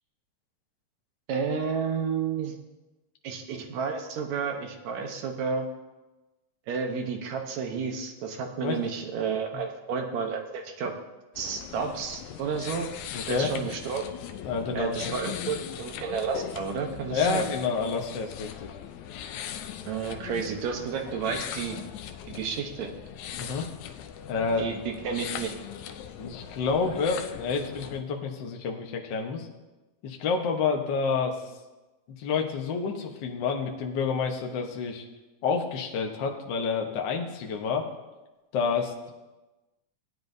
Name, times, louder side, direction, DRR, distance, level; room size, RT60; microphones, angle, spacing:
voice 1, 1.3-2.6 3.2-5.7 6.7-11.0 11.4-12.9 13.3-14.0 14.7-17.4 19.9-21.8 22.3-22.9 24.6-25.6, right 6 dB, 70° right, 3 dB, 2.2 m, -31 dB
sound 1, 11.3-28.0, left 9 dB, 85° left, 2.0 m, -39 dB
voice 2, 13.1-13.6 14.4-15.2 17.1-18.7 23.4-23.7 24.3-24.7 26.2-29.5 30.0-31.4 32.2-35.0 35.4-37.9 38.5-39.1, left 5 dB, 60° left, 2 dB, 1.3 m, -29 dB
17.5 x 9.6 x 2.7 m, 1.1 s
omnidirectional pair, 3.4 m